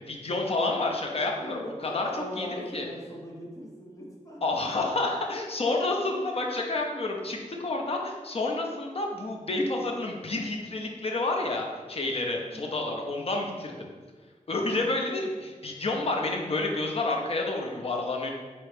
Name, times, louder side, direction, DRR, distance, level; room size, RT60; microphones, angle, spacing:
voice 1, 0.1-2.9 4.4-13.9 14.5-18.3, left 2 dB, 45° left, 0 dB, 0.6 m, -29 dB
voice 2, 1.1-4.4 17.7-17.8, equal, 25° left, -3 dB, 1.0 m, -40 dB
4.3 x 2.9 x 3.3 m, 1.4 s
wide cardioid pair, 90°, 14 cm